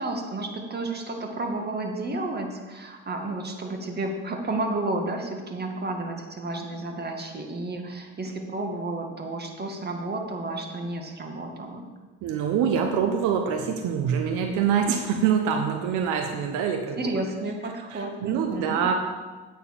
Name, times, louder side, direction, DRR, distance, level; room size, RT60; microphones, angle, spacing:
voice 1, 0.0-11.8 17.0-18.8, right 2 dB, 35° right, 3 dB, 2.1 m, -31 dB
voice 2, 12.2-17.0 17.9-18.9, right 7 dB, 75° right, 4 dB, 1.0 m, -25 dB
9.1 x 6.7 x 6.8 m, 1.3 s
supercardioid pair, 70°, 30 cm